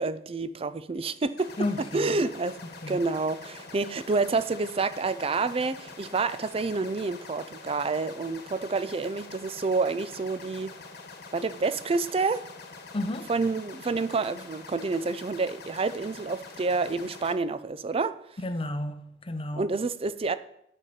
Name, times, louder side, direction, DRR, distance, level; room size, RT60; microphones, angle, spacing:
voice 1, 0.0-1.5 1.9-10.7 11.3-12.4 13.3-18.2 19.6-20.3, right 3 dB, 30° right, 0.4 m, -28 dB
sound 1, 1.4-17.3, left 4 dB, 55° left, 1.3 m, -45 dB
voice 2, 1.6-2.2 2.8-3.0 12.9-13.3 18.4-19.7, left 1 dB, 30° left, 0.7 m, -32 dB
9.4 x 5.6 x 6.6 m
head